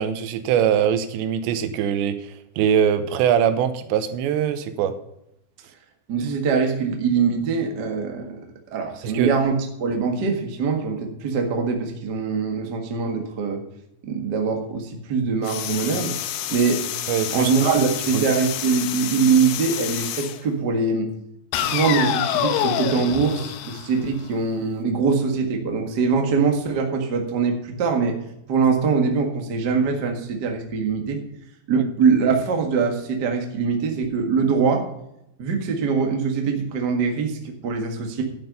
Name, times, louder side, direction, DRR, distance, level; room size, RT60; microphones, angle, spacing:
voice 1, 0.0-5.0 9.0-9.3 17.1-17.8 18.1-18.3 31.8-31.9, right 9 dB, 90° right, 11 dB, 3.1 m, -22 dB
voice 2, 6.1-8.4 8.7-13.6 14.0-16.1 16.5-16.8 17.3-21.1 21.5-28.2 28.5-31.2 31.7-34.8 35.4-38.2, right 5 dB, 70° right, 3 dB, 1.0 m, -23 dB
sound 1, 15.5-20.4 21.5-24.5, left 11 dB, 75° left, 2.8 m, -28 dB
11.5 x 7.9 x 5.4 m, 0.80 s
omnidirectional pair, 5.0 m